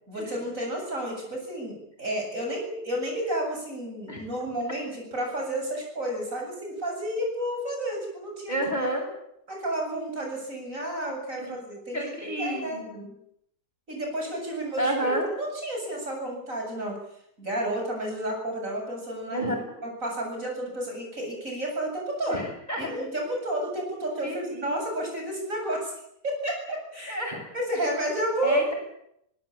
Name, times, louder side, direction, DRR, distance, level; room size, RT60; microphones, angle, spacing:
voice 1, 0.1-8.5 9.5-12.1 12.4-12.8 13.9-17.0 17.4-19.4 19.8-22.4 22.8-25.9 26.2-27.2 27.5-28.7, right 1 dB, 55° right, 1 dB, 8.6 m, -31 dB
voice 2, 8.5-9.0 11.4-11.6 11.9-13.1 14.8-15.3 19.3-19.8 22.3-22.9 24.2-24.8 27.1-27.4 28.4-28.7, right 1 dB, 25° left, 1 dB, 8.0 m, -30 dB
24.5 x 18.5 x 8.8 m, 0.75 s
omnidirectional pair, 1.7 m